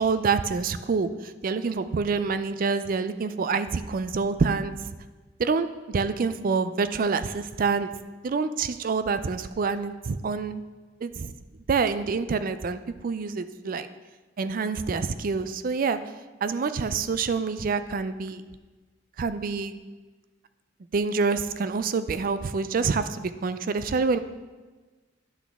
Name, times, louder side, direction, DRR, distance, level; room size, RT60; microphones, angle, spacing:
voice 1, 0.0-4.9 5.4-7.9 8.2-10.6 11.0-11.3 11.7-13.9 14.4-16.0 16.4-18.4 19.2-19.8 20.9-24.2, right 4 dB, 50° right, 12 dB, 0.4 m, -27 dB
10.5 x 6.0 x 3.5 m, 1.3 s
head